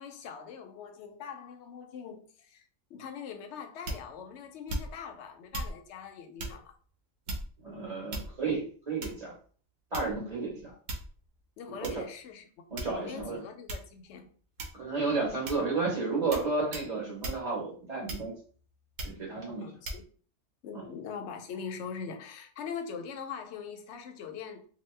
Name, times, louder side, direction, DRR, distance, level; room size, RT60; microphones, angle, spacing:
voice 1, 0.0-2.6 2.9-6.7 11.6-12.7 12.9-14.3 19.6-20.0 20.6-24.7, left 6 dB, 70° left, 0.8 m, -42 dB
sound 1, 3.8-4.2 4.7-5.1 5.5-5.8 6.4-6.6 7.3-7.6 8.1-8.5 9.0-9.3 9.9-10.3 10.9-11.2 11.8-12.0 12.8-13.2 13.7-13.9 14.6-14.9 15.5-15.7 16.3-16.5 16.7-16.9 17.2-17.4 18.1-18.5 19.0-19.2 19.8-20.0, right 1 dB, 80° right, 1.1 m, -37 dB
voice 2, 7.6-9.3 9.9-10.7 11.7-12.0 12.7-13.4 14.7-18.3 19.0-19.8 20.7-20.8, right 3 dB, 30° right, 1.4 m, -32 dB
2.9 x 2.2 x 3.1 m
omnidirectional pair, 1.3 m